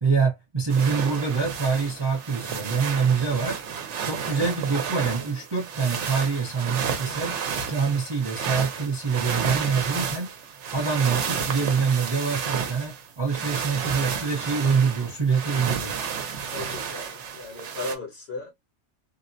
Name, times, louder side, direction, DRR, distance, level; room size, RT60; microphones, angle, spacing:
voice 1, 0.0-3.6 4.0-7.4 7.7-10.3 10.7-15.9, right 5 dB, 25° right, 0.7 m, -25 dB
sound 1, 0.7-18.0, right 6 dB, 75° right, 1.0 m, -31 dB
voice 2, 16.5-18.5, left 3 dB, 60° left, 1.4 m, -36 dB
3.8 x 2.0 x 2.5 m
omnidirectional pair, 1.2 m